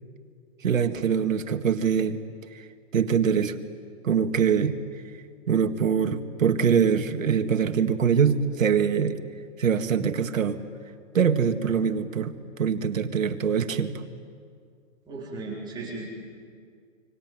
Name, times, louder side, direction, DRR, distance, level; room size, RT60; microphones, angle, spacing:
voice 1, 0.6-2.2 2.5-2.7 2.9-3.5 4.0-4.7 5.5-9.2 9.6-10.6 11.1-12.3 12.6-14.0, right 7 dB, 80° right, 7 dB, 2.0 m, -23 dB
voice 2, 15.1-16.1, right 3 dB, 10° right, -5 dB, 3.7 m, -36 dB
26.0 x 24.5 x 9.3 m, 2.2 s
hypercardioid pair, 165°, 39 cm